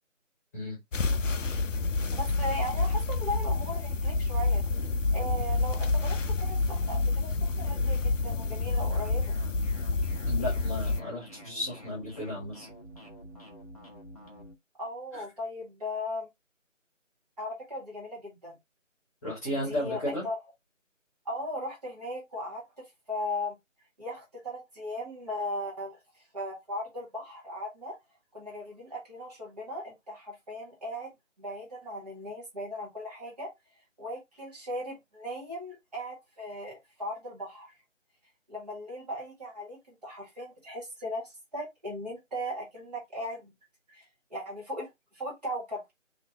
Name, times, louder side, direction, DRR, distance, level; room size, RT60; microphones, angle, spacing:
sound 1, 0.9-11.0, left 3 dB, 70° left, 0.6 m, -28 dB
voice 1, 2.1-4.6 5.1-9.3 14.8-16.3 17.4-18.6 19.5-20.4 21.3-23.6 24.0-27.9 28.3-31.1 31.4-33.5 34.0-37.7 38.5-43.5 43.9-44.0 44.3-44.9 45.1-45.9, left 1 dB, 30° right, 1.8 m, -38 dB
sound 2, 8.9-14.5, equal, 30° left, 0.8 m, -49 dB
voice 2, 10.2-12.7 15.1-15.2 19.2-20.2, left 1 dB, 15° left, 1.5 m, -34 dB
4.1 x 3.1 x 2.7 m
figure-of-eight pair, 165°, 39 cm